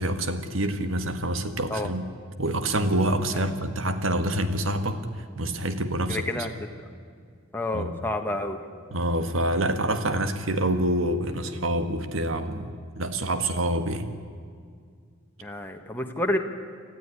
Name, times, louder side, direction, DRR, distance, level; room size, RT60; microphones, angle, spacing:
voice 1, 0.0-2.0 2.4-5.0 5.3-6.5 7.7-7.9 8.9-14.1, right 1 dB, 85° right, 8 dB, 1.7 m, -27 dB
voice 2, 6.1-6.5 7.5-8.6 15.4-16.4, left 1 dB, 10° left, 3 dB, 1.4 m, -29 dB
26.0 x 14.0 x 9.9 m, 2.1 s
head